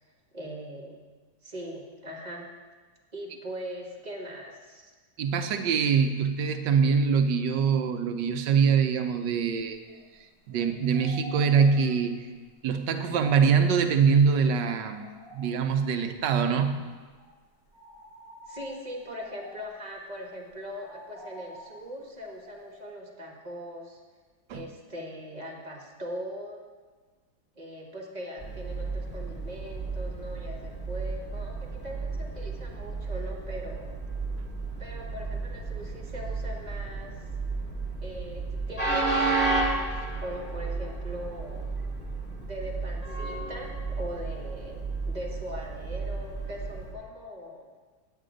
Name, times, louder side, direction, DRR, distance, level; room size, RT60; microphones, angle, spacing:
voice 1, 0.3-1.0 1.4-2.5 3.1-4.9 18.5-24.0 24.5-26.6 27.6-34.0 34.8-37.3 38.0-41.7 42.4-47.7, equal, 25° right, 0 dB, 1.1 m, -40 dB
voice 2, 5.2-9.8 10.5-12.3 12.6-15.1 15.3-16.8 24.5-24.6, right 6 dB, 80° right, 7 dB, 1.4 m, -24 dB
sound 1, 9.5-10.2 10.5-14.4 14.9-16.2 16.5-16.8 17.0-22.8, right 1 dB, 65° left, 4.3 m, -49 dB
Train, 28.4-46.9, right 3 dB, 5° left, 1.5 m, -32 dB
9.2 x 8.6 x 5.1 m, 1.4 s
omnidirectional pair, 2.0 m